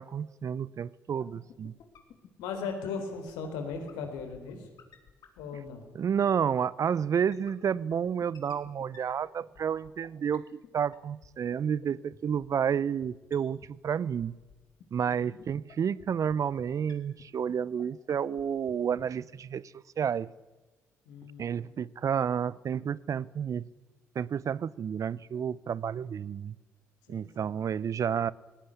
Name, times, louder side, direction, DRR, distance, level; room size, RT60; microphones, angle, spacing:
voice 1, 0.0-1.8 5.9-14.4 14.9-20.3 21.4-23.7 24.1-26.6 27.1-28.3, right 7 dB, 50° right, 0.7 m, -30 dB
sound 1, 1.2-5.8 7.3-10.1 10.3-10.4 10.6-10.7 10.9-11.0 11.2-11.3 11.5-11.6 11.8-11.9 12.1-12.2 12.4-12.5 12.7-12.8 13.0-13.1 13.3-13.4 13.6-13.7 13.9-14.0 14.2-14.5 14.8-14.9 15.1-15.2 15.4-15.5 15.7-15.8 16.0-16.1 16.3-16.4 16.6-16.7 16.9-17.0 17.2-17.3 17.5-17.6 17.8-17.9 18.1-18.4 18.7-18.8 19.0-19.1, left 9 dB, 65° left, 3.1 m, -52 dB
voice 2, 2.4-4.6 5.4-5.8 15.0-15.4 21.1-21.8 27.1-27.3, left 5 dB, 80° left, 3.8 m, -38 dB
19.0 x 18.5 x 9.9 m
hypercardioid pair, 50°, 7 cm